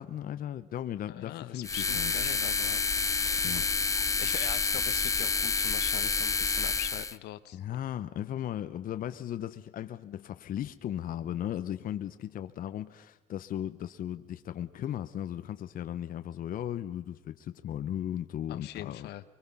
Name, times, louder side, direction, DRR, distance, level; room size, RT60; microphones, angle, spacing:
voice 1, 0.0-2.1 3.4-3.7 7.5-19.1, left 11 dB, 55° left, 1.0 m, -36 dB
voice 2, 1.1-2.8 3.2-3.6 4.2-7.8 18.5-19.2, left 14 dB, 80° left, 1.2 m, -42 dB
sound 1, 1.6-7.2, left 4 dB, 20° left, 0.8 m, -29 dB
23.5 x 23.5 x 5.6 m
cardioid pair, 110°, 17 cm